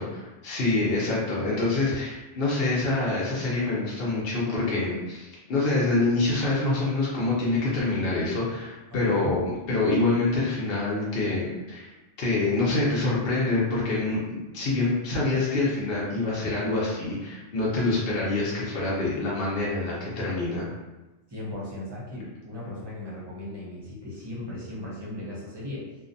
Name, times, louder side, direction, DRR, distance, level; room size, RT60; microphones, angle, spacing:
voice 1, 0.0-11.9 12.2-20.7, left 2 dB, 60° left, -6 dB, 0.8 m, -26 dB
voice 2, 8.9-9.4 21.3-25.9, left 2 dB, 25° right, -7 dB, 0.6 m, -37 dB
2.6 x 2.1 x 2.5 m, 1.1 s
omnidirectional pair, 1.2 m